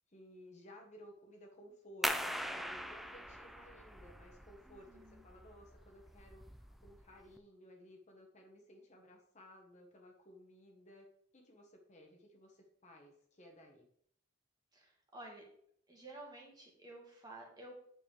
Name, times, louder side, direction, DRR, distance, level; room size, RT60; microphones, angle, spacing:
voice 1, 0.1-13.8, left 1 dB, 35° left, 1 dB, 1.3 m, -58 dB
sound 1, 2.0-7.4, equal, ahead, 0.4 m, -42 dB
voice 2, 4.7-5.2 14.7-15.4 15.9-17.8, right 2 dB, 20° right, -1 dB, 1.8 m, -52 dB
8.9 x 5.3 x 3.3 m, 0.65 s
head